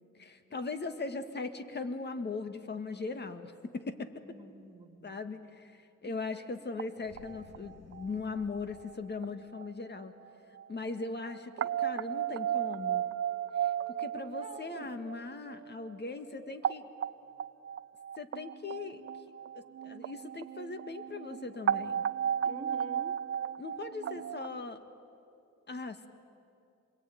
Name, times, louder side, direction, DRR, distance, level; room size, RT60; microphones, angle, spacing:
voice 1, 0.2-4.4 5.0-5.7 6.0-10.1 10.7-13.0 13.6-13.7 14.0-16.9 18.2-19.0 19.5-22.0 23.6-24.8 25.7-26.1, left 3 dB, 35° left, 8 dB, 1.9 m, -39 dB
voice 2, 4.2-5.2 6.0-6.1 14.4-14.9 22.4-23.2, right 2 dB, 20° right, 3 dB, 2.3 m, -47 dB
sound 1, 6.8-6.9 7.2-8.3 8.9-9.0 9.2-9.3 9.6-9.7 10.0-10.1 10.3-10.7 11.0-15.9 16.4-24.6, right 9 dB, 45° right, 0.6 m, -35 dB
sound 2, 7.0-9.2, left 4 dB, 55° left, 2.3 m, -56 dB
27.5 x 22.0 x 9.3 m, 2.6 s
cardioid pair, 90°, 30 cm